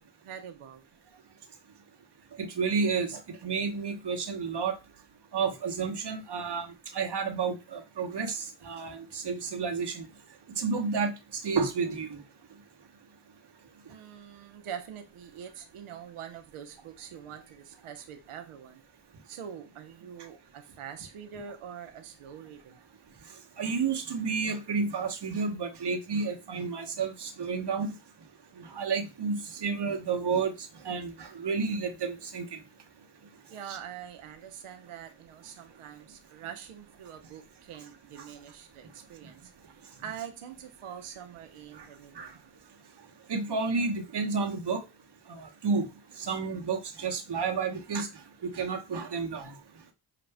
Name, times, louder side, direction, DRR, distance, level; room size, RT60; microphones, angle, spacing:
voice 1, 0.2-0.8 13.9-18.8 19.2-22.8 33.5-39.6 40.0-42.4, right 8 dB, 85° right, 0.9 m, -44 dB
voice 2, 2.4-4.7 5.3-6.7 6.9-10.1 10.6-12.2 23.6-27.9 28.6-30.5 30.8-32.6 33.7-33.8 42.2-42.3 43.3-44.8 45.3-45.9 46.2-48.1 48.4-49.5, right 5 dB, 55° right, 1.1 m, -31 dB
5.9 x 2.5 x 3.4 m
cardioid pair, 50°, 49 cm